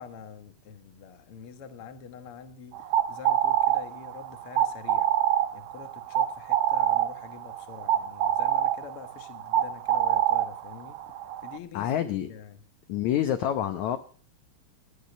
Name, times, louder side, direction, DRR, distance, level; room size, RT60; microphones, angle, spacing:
voice 1, 0.0-5.1 5.5-11.1 11.4-12.0 12.3-12.6, left 7 dB, 60° left, 8 dB, 1.5 m, -45 dB
sound 1, 2.7-11.6, right 11 dB, 75° right, 1.9 m, -26 dB
voice 2, 11.7-12.3 12.9-14.0, left 11 dB, 90° left, 10 dB, 1.6 m, -27 dB
17.5 x 11.0 x 5.2 m, 0.43 s
omnidirectional pair, 4.5 m